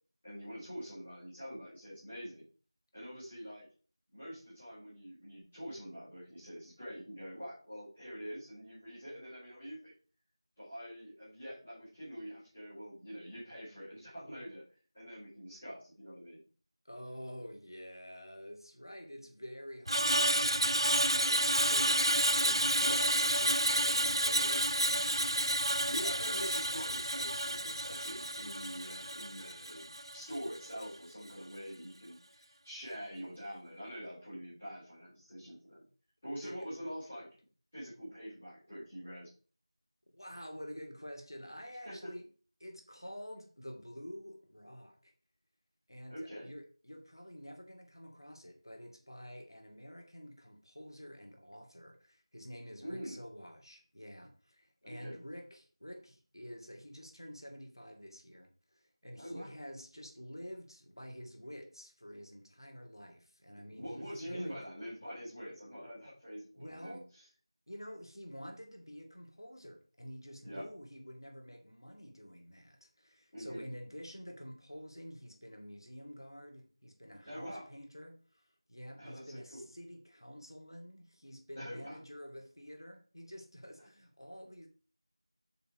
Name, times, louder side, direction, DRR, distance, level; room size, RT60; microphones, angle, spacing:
voice 1, 0.2-2.4 2.9-3.6 4.1-9.9 10.6-14.6 14.9-16.4 22.8-23.1 25.9-35.8 36.2-37.3 37.7-39.3 41.8-42.1 46.1-46.5 52.8-53.2 54.8-55.1 59.2-59.5 63.8-67.2 70.4-70.6 73.3-73.7 77.2-77.7 79.0-79.7 81.5-82.0 83.8-83.9, equal, 5° left, 3.5 m, -45 dB
voice 2, 16.8-26.4 36.4-36.6 40.1-42.3 42.6-45.1 45.9-64.0 64.2-64.6 66.6-67.1 67.7-78.4 78.7-84.7, equal, 55° left, 2.5 m, -49 dB
Screech, 19.9-30.2 30.6-30.8, right 1 dB, 65° right, 0.5 m, -30 dB
7.6 x 5.8 x 5.0 m
figure-of-eight pair, 180°, 3 cm